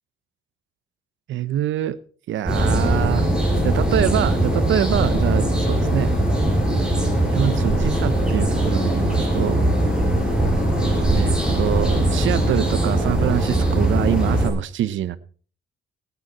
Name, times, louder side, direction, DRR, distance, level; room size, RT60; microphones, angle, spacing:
voice 1, 1.3-2.0 2.3-3.3 3.6-6.1 7.3-9.7 11.1-15.2, right 11 dB, 75° right, 15 dB, 0.9 m, -25 dB
sound 1, 2.5-14.5, right 1 dB, 5° right, 5.4 m, -20 dB
18.0 x 9.6 x 4.2 m, 0.42 s
cardioid pair, 90°, 20 cm